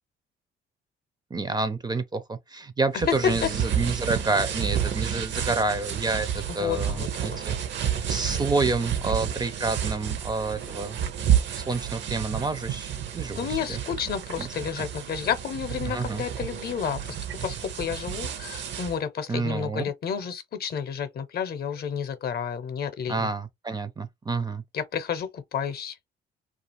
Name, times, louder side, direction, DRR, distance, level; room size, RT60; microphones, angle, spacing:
voice 1, 1.3-11.0 11.5-12.9 13.1-13.8 14.4-14.5 14.8-14.9 15.9-16.2 19.3-19.8 23.1-24.6, right 3 dB, 20° right, 0.4 m, -29 dB
sound 1, 3.0-19.0, right 9 dB, 65° right, 0.6 m, -30 dB
voice 2, 6.5-7.4 13.4-23.3 24.7-26.0, left 7 dB, 50° left, 0.6 m, -31 dB
2.4 x 2.4 x 2.8 m
cardioid pair, 90°, 20 cm